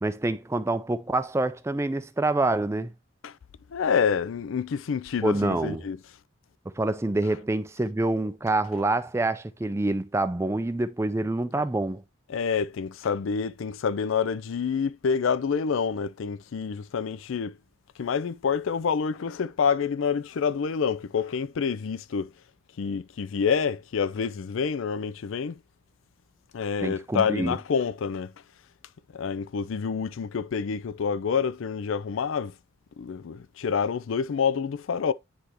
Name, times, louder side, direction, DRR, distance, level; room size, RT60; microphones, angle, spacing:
voice 1, 0.0-2.9 5.2-5.8 6.7-12.0 26.8-27.6, right 2 dB, 15° right, 0.3 m, -26 dB
voice 2, 3.7-6.0 12.3-17.6 18.0-22.3 22.8-25.6 26.5-28.3 29.1-32.5 33.0-35.1, left 6 dB, 75° left, 0.4 m, -27 dB
9.8 x 3.4 x 2.9 m
head